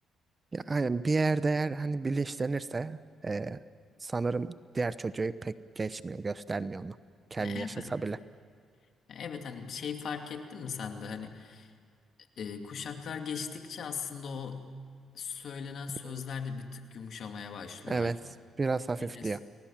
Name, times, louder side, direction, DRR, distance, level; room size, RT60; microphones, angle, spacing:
voice 1, 0.5-3.6 4.0-7.0 7.3-8.2 16.0-16.2 17.9-18.2 18.6-19.4, right 3 dB, 30° right, 14 dB, 0.9 m, -31 dB
voice 2, 7.4-8.0 9.1-11.7 12.4-14.7 15.1-18.1 19.0-19.3, left 6 dB, 65° left, 5 dB, 2.7 m, -39 dB
30.0 x 20.0 x 7.5 m, 2.2 s
cardioid pair, 80°, 0 cm